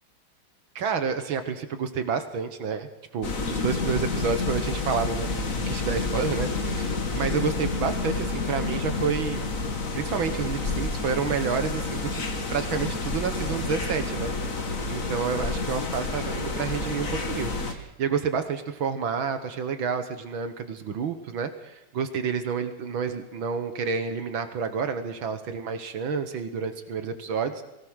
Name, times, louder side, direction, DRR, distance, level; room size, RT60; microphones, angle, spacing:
voice 1, 0.8-2.9 3.1-9.5 9.9-12.2 12.5-27.6, right 6 dB, 70° right, 9 dB, 2.1 m, -29 dB
sound 1, 3.2-17.7, left 3 dB, 40° left, 2.2 m, -29 dB
23.5 x 17.5 x 6.4 m, 0.92 s
omnidirectional pair, 2.3 m